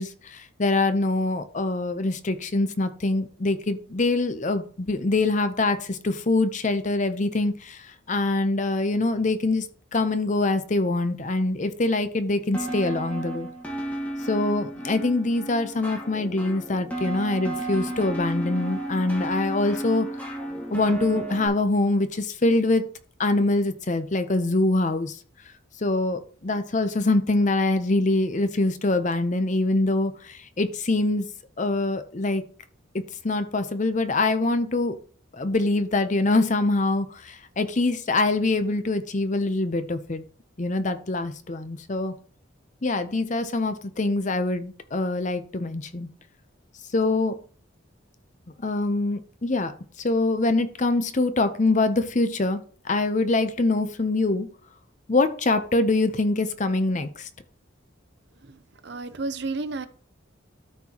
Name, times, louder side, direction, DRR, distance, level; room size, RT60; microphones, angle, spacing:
voice 1, 0.0-9.7 9.9-13.5 14.2-20.1 20.7-22.9 23.2-25.2 25.8-31.3 31.6-32.4 33.2-35.0 35.3-40.2 40.6-42.1 42.8-46.1 46.9-47.4 48.6-49.7 50.0-54.5 55.1-57.3, left 2 dB, 35° left, 0.7 m, -24 dB
sound 1, 12.5-21.5, right 1 dB, 5° left, 1.4 m, -33 dB
voice 2, 58.4-59.9, right 3 dB, 55° right, 0.6 m, -32 dB
13.0 x 4.4 x 2.9 m
head